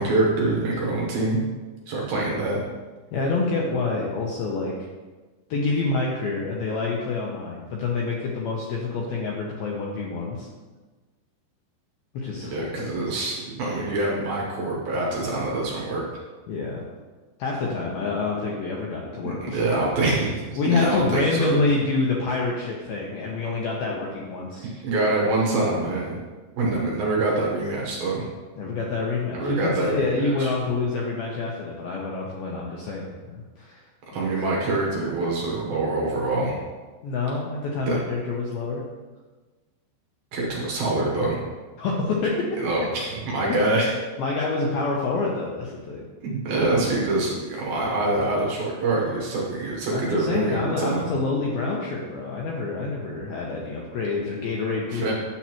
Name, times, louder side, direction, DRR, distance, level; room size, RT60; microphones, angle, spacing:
voice 1, 0.0-1.4 1.9-2.6 12.5-16.0 19.2-21.5 24.6-26.2 26.6-28.3 29.3-30.5 34.1-36.6 37.9-38.0 40.3-41.4 42.6-43.9 46.2-51.1 54.9-55.1, right 2 dB, 70° right, -3 dB, 2.5 m, -25 dB
voice 2, 3.1-4.7 5.5-10.5 12.1-13.1 16.5-16.8 17.4-19.7 20.6-24.7 28.6-33.8 34.1-34.3 37.0-38.8 41.8-42.4 43.0-43.1 43.5-43.6 44.2-46.0 49.9-55.1, left 3 dB, 80° left, -3 dB, 2.2 m, -27 dB
9.8 x 7.2 x 3.0 m, 1.3 s
omnidirectional pair, 5.3 m